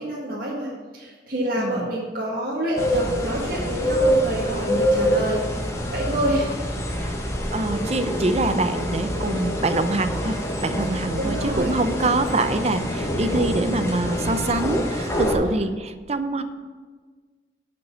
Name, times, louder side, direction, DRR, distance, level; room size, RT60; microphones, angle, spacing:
voice 1, 0.0-5.4 5.9-6.6 11.2-11.7, right 1 dB, 55° right, -6 dB, 1.8 m, -27 dB
sound 1, 2.8-15.3, equal, 15° left, 1.3 m, -26 dB
voice 2, 7.5-16.4, right 2 dB, 35° right, 10 dB, 0.6 m, -25 dB
11.0 x 5.4 x 7.1 m, 1.4 s
head